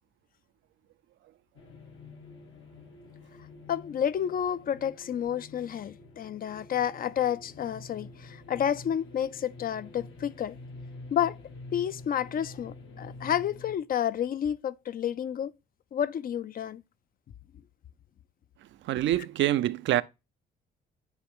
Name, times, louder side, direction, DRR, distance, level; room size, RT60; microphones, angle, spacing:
sound 1, 1.6-13.8, left 2 dB, 80° left, 1.6 m, -47 dB
voice 1, 3.7-10.6 11.1-11.4 11.7-15.5 15.9-16.8, left 9 dB, 45° left, 0.4 m, -30 dB
voice 2, 18.8-20.0, right 13 dB, 70° right, 0.4 m, -26 dB
9.8 x 3.3 x 3.6 m
cardioid pair, 90°, 20 cm